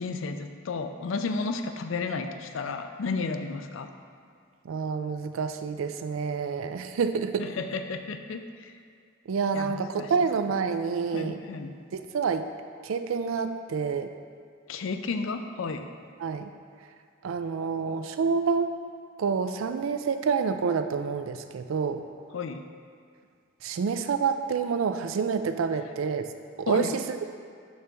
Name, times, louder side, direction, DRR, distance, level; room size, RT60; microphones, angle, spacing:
voice 1, 0.0-3.9 7.4-8.7 9.5-10.1 11.1-11.7 14.7-15.9 22.3-22.6 26.7-26.9, left 4 dB, 80° left, 7 dB, 0.4 m, -32 dB
voice 2, 4.6-7.5 9.3-11.4 11.9-12.5 12.8-14.1 16.2-16.5 17.2-18.7 19.2-22.0 23.6-26.3 26.6-27.2, right 5 dB, 90° right, 8 dB, 0.4 m, -28 dB
6.4 x 3.4 x 5.9 m, 2.2 s
head